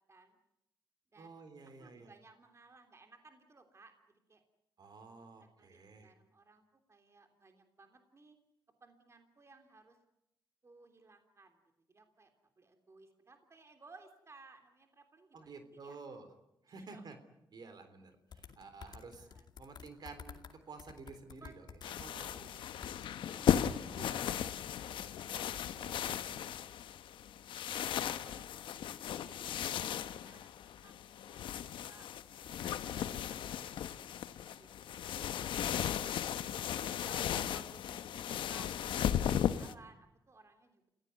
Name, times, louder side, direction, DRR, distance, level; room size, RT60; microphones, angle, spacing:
voice 1, 1.2-2.1 4.8-6.1 15.3-16.3 16.6-17.2 17.5-19.3 19.6-22.5 23.3-24.5 24.8-26.4, right 4 dB, 60° right, 9 dB, 3.6 m, -52 dB
voice 2, 1.8-4.4 5.1-8.4 8.8-10.0 10.6-11.6 11.9-12.3 12.6-16.0 16.8-17.0 19.0-19.4 21.4-22.8 23.3-24.0 28.0-28.5 29.0-30.5 30.8-30.9 31.2-32.1 32.6-36.1 37.1-38.7 39.4-40.9, right 3 dB, 35° right, 6 dB, 3.2 m, -60 dB
sound 1, 18.3-20.5 20.8-22.5 22.8-23.2, left 6 dB, 65° left, 2.3 m, -51 dB
sound 2, 21.8-39.7, left 10 dB, 85° left, 1.0 m, -36 dB
28.5 x 16.5 x 9.5 m, 0.85 s
cardioid pair, 85°, 8 cm